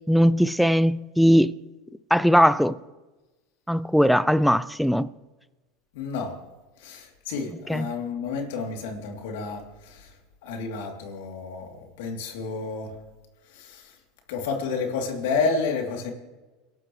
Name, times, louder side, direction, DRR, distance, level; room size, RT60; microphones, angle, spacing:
voice 1, 0.1-1.5 2.1-2.7 3.7-5.1 7.7-7.9, equal, ahead, 0.5 m, -19 dB
voice 2, 5.9-6.4 6.8-10.1 10.4-13.0 13.5-14.0 14.3-16.1, left 4 dB, 80° left, 3.1 m, -30 dB
30.0 x 12.0 x 3.2 m
supercardioid pair, 105°, 0 cm